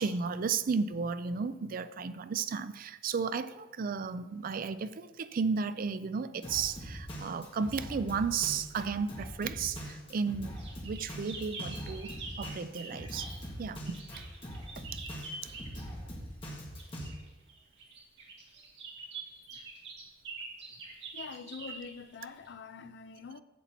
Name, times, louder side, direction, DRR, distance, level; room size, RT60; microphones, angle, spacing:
voice 1, 0.0-13.3 13.6-14.2 14.9-15.0, right 5 dB, 50° right, 0.4 m, -34 dB
Drum kit, 6.4-17.1, equal, 30° left, 1.8 m, -43 dB
sound 1, 10.6-13.5 13.8-15.8 16.8-22.5, right 4 dB, 65° right, 2.2 m, -45 dB
voice 2, 21.1-23.4, left 5 dB, 65° left, 0.4 m, -45 dB
11.0 x 8.1 x 3.0 m
head